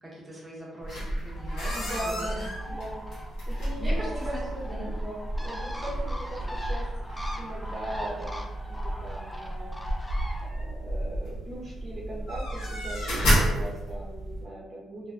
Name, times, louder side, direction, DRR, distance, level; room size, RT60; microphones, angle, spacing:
voice 1, 0.0-2.5 3.5-4.4 4.7-4.9, equal, 15° right, -5 dB, 0.8 m, -41 dB
sound 1, 0.8-14.4, equal, 90° left, 1.0 m, -31 dB
Bird, 1.3-10.5, equal, 10° left, 0.3 m, -42 dB
voice 2, 1.7-3.0 3.5-6.9 7.4-9.7 10.4-15.1, right 1 dB, 45° right, -6 dB, 0.7 m, -39 dB
2.5 x 2.2 x 2.4 m, 1.0 s
cardioid pair, 90°, 0 cm